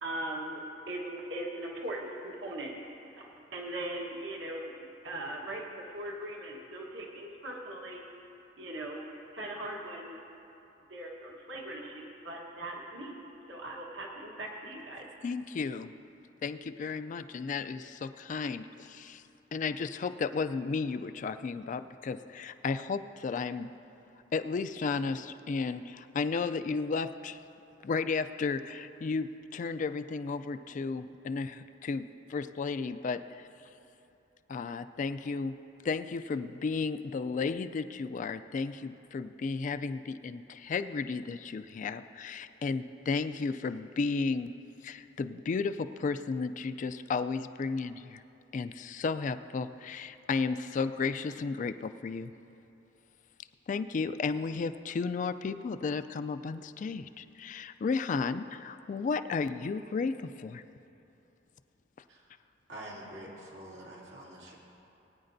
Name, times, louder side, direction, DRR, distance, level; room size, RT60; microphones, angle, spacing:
voice 1, 0.0-4.7 5.0-8.0 8.6-9.0 9.3-10.2 10.9-13.2 13.5-15.1, right 1 dB, 80° right, -1 dB, 1.3 m, -40 dB
voice 2, 15.2-15.9 16.4-19.2 19.5-23.7 24.3-27.4 27.8-32.0 32.3-33.5 34.5-35.6 35.8-44.5 44.8-48.2 48.5-52.3 53.7-60.1 60.4-60.6, left 4 dB, 45° left, 11 dB, 0.3 m, -33 dB
voice 3, 62.7-64.6, right 1 dB, 65° right, -6 dB, 2.7 m, -46 dB
21.0 x 9.6 x 2.6 m, 2.9 s
head